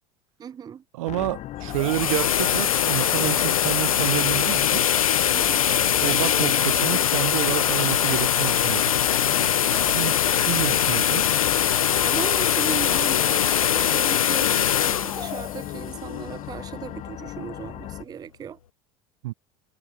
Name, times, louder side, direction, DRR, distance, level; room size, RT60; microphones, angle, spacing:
voice 1, 0.4-0.8 5.3-5.7 9.7-10.1 12.0-18.6, right 8 dB, 20° right, 0.5 m, -37 dB
voice 2, 0.9-4.8 6.0-8.8 9.8-11.4 19.2-19.3, right 18 dB, 70° right, 0.6 m, -29 dB
sound 1, 1.1-18.0, left 14 dB, 40° left, 0.8 m, -37 dB
sound 2, 1.6-16.5, left 10 dB, 90° left, 0.5 m, -22 dB
sound 3, 8.9-11.1 11.4-13.8, left 17 dB, 70° left, 2.6 m, -43 dB
hypercardioid pair, 80°, 17 cm